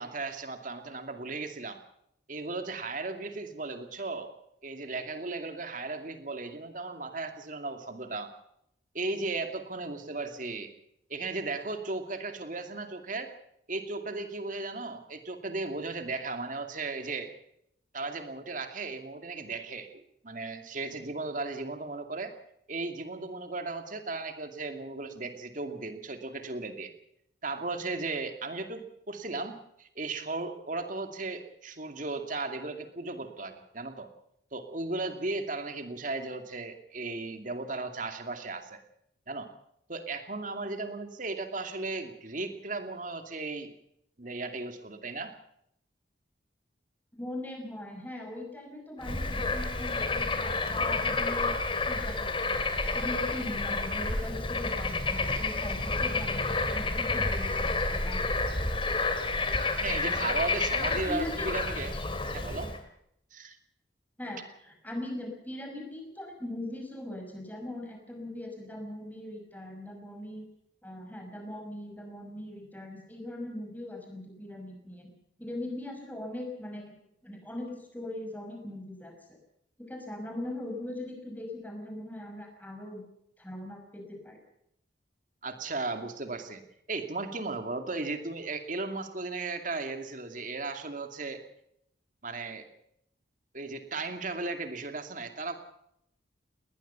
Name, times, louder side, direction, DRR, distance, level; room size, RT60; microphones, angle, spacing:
voice 1, 0.0-1.8 2.3-4.3 4.6-8.3 8.9-10.7 11.1-13.3 13.7-17.3 17.9-22.3 22.7-26.9 27.4-34.1 34.5-38.8 39.3-39.5 39.9-43.7 44.2-45.4 59.8-62.0 62.3-62.7 63.3-63.6 85.4-86.6 86.9-91.4 92.2-92.7 93.5-95.5, right 3 dB, 45° right, 7 dB, 2.5 m, -36 dB
voice 2, 47.1-51.6 51.9-52.6 52.9-58.3 60.8-61.5 64.2-70.5 70.8-75.1 75.4-77.0 77.2-79.4 79.8-83.0 83.4-84.4, left 1 dB, 10° left, 3 dB, 5.8 m, -40 dB
Bird / Frog, 49.0-62.8, left 3 dB, 30° left, 2.6 m, -30 dB
20.5 x 19.5 x 7.0 m, 0.76 s
head